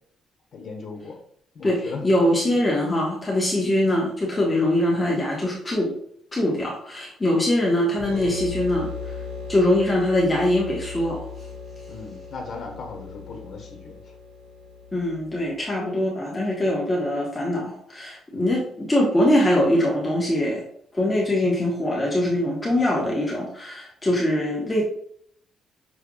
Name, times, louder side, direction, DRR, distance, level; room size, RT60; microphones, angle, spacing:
voice 1, 0.5-1.2 1.5-2.1 11.9-14.1 18.3-18.6, left 4 dB, 55° left, 2 dB, 1.4 m, -37 dB
voice 2, 1.6-5.9 6.3-9.1 9.5-11.3 14.9-20.6 20.9-24.8, left 1 dB, 20° left, -3 dB, 1.2 m, -22 dB
sound 1, 8.0-15.5, left 4 dB, 80° right, 1.7 m, -37 dB
6.0 x 3.4 x 2.4 m, 0.65 s
cardioid pair, 90°, 0 cm